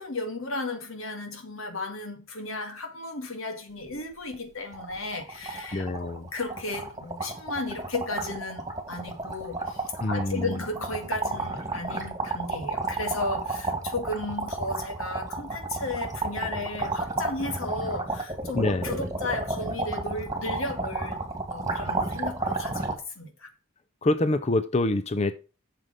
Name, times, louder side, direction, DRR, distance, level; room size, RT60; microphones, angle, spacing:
voice 1, 0.0-21.2 21.5-22.9 23.2-23.5, left 2 dB, 85° left, 2.0 m, -34 dB
sound 1, 3.9-4.0 4.3-4.4 4.7-22.9, right 2 dB, 15° right, 2.2 m, -32 dB
voice 2, 5.7-6.3 10.0-10.6 18.5-18.9 24.0-25.3, left 2 dB, 30° left, 0.5 m, -26 dB
7.6 x 6.7 x 5.1 m
head